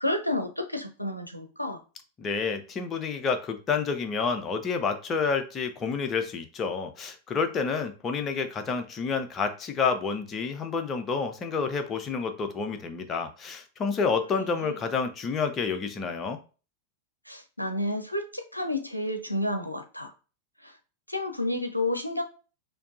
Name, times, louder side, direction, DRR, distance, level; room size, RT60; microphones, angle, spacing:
voice 1, 0.0-1.8 14.3-14.7 17.3-20.1 20.6-20.7 21.1-22.2, left 1 dB, 90° left, 6 dB, 0.5 m, -30 dB
voice 2, 2.2-16.4, left 5 dB, 25° left, 8 dB, 0.5 m, -29 dB
4.4 x 2.7 x 2.4 m, 0.35 s
figure-of-eight pair, 90°, 0 cm